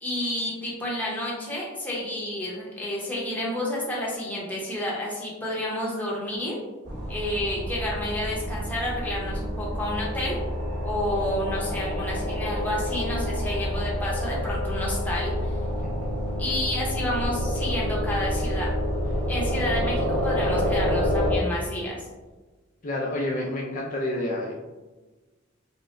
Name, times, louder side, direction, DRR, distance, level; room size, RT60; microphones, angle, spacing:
voice 1, 0.0-6.5 7.1-10.4 10.8-15.3 16.4-18.7 19.3-22.1, left 1 dB, 10° left, -5 dB, 0.9 m, -30 dB
sound 1, 6.8-21.4, equal, 70° right, 1.0 m, -28 dB
voice 2, 15.8-16.1 22.8-24.5, left 1 dB, 40° left, -2 dB, 0.4 m, -29 dB
5.3 x 2.2 x 2.5 m, 1.2 s
head